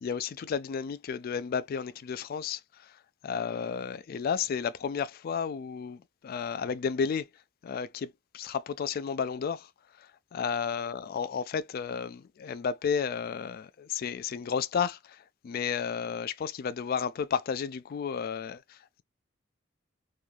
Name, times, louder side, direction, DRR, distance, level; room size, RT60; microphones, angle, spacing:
voice 1, 0.0-19.0, left 6 dB, 45° left, 0.3 m, -33 dB
3.1 x 2.3 x 2.4 m
head